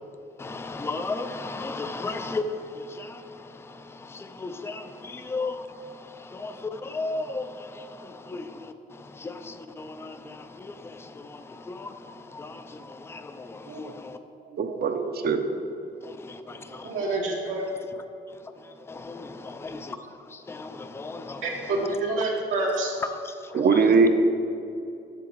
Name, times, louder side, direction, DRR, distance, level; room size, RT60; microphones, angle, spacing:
voice 1, 0.4-14.2 16.0-17.2 17.6-22.0 23.0-24.1, left 3 dB, 10° left, 9 dB, 0.4 m, -36 dB
voice 2, 14.6-15.4 23.5-24.1, right 4 dB, 55° right, 6 dB, 0.7 m, -21 dB
voice 3, 16.8-17.6 21.4-22.9, right 2 dB, 85° right, -3 dB, 1.5 m, -27 dB
7.4 x 6.6 x 4.0 m, 2.7 s
cardioid pair, 90°, 20 cm